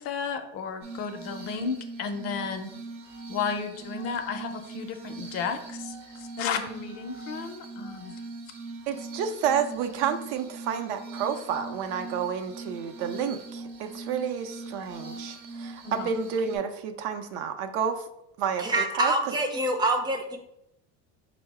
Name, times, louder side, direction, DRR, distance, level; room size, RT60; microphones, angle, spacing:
voice 1, 0.0-2.7 3.3-8.1 15.8-16.1, left 6 dB, 45° left, 6 dB, 0.5 m, -33 dB
Glass, 0.8-16.6, right 3 dB, 50° right, 0.9 m, -41 dB
voice 2, 8.9-18.1 18.4-19.1, right 7 dB, 75° right, 7 dB, 0.6 m, -30 dB
voice 3, 18.6-20.4, right 1 dB, 15° right, 3 dB, 0.4 m, -26 dB
4.6 x 2.0 x 4.6 m, 0.80 s
cardioid pair, 150°, 34 cm